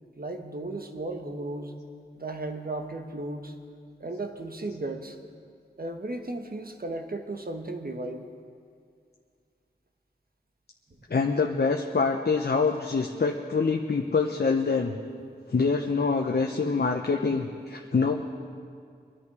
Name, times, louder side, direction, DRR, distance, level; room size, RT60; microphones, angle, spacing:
voice 1, 0.2-1.8 2.2-3.5 4.0-5.2 5.8-8.3 17.1-17.2, right 2 dB, 55° right, 5 dB, 1.3 m, -35 dB
voice 2, 11.1-14.9 15.5-18.2, left 4 dB, 60° left, 2 dB, 0.8 m, -25 dB
23.5 x 10.0 x 4.8 m, 2.3 s
wide cardioid pair, 65°, 18 cm